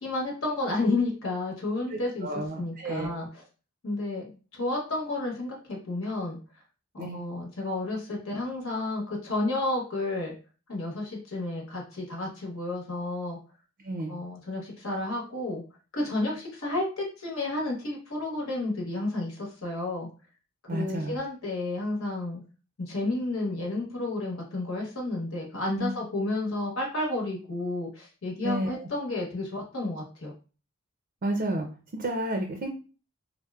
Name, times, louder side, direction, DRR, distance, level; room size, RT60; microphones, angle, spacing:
voice 1, 0.0-3.4 3.8-4.2 4.5-6.4 6.9-10.3 10.7-13.4 14.1-15.6 15.9-20.1 20.7-22.4 22.8-30.3, left 2 dB, 70° left, -2 dB, 0.9 m, -31 dB
voice 2, 1.9-3.3 7.0-7.3 13.8-14.2 20.7-21.2 25.8-26.0 28.4-28.9 31.2-31.7 31.9-32.7, right 1 dB, 45° right, 2 dB, 0.5 m, -31 dB
4.1 x 2.1 x 2.3 m, 0.35 s
head